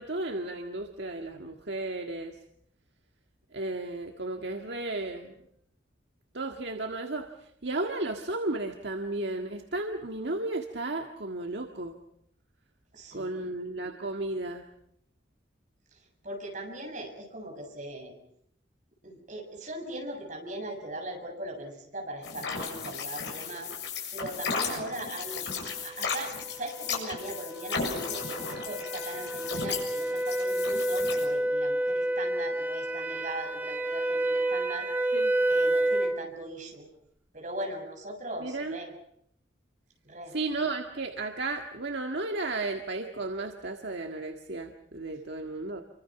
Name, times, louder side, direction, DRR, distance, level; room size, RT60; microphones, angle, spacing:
voice 1, 0.0-2.4 3.5-5.3 6.3-12.0 13.1-14.7 35.1-35.3 38.4-38.8 40.3-45.8, right 2 dB, 65° right, 3 dB, 1.7 m, -34 dB
voice 2, 12.9-13.5 16.2-18.1 19.0-23.7 24.1-25.5 25.8-26.3 26.6-34.9 35.5-36.9 37.3-38.9 40.1-40.3, right 1 dB, 40° right, 1 dB, 7.2 m, -39 dB
sound 1, 22.2-31.3, left 5 dB, 65° left, 7.3 m, -35 dB
sound 2, 26.3-36.2, right 1 dB, 10° right, 1.6 m, -29 dB
28.5 x 25.0 x 6.0 m, 0.72 s
head